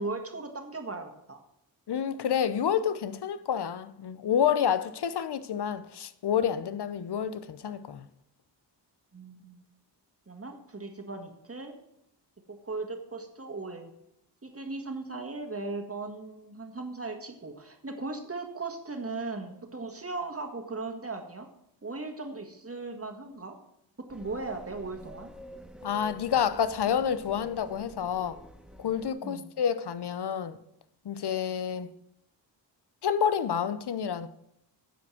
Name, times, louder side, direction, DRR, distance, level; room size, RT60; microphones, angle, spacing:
voice 1, 0.0-1.4 9.1-9.6 10.3-11.8 12.5-13.9 14.4-21.5 21.8-23.6 24.0-25.3 29.2-29.5, right 3 dB, 30° right, 1.7 m, -38 dB
voice 2, 1.9-8.1 25.8-28.4 28.8-30.6 31.0-31.9 33.0-34.3, left 8 dB, 60° left, 0.8 m, -29 dB
sound 1, 24.1-29.1, equal, ahead, 0.5 m, -48 dB
9.2 x 5.1 x 7.6 m
cardioid pair, 60°, 45 cm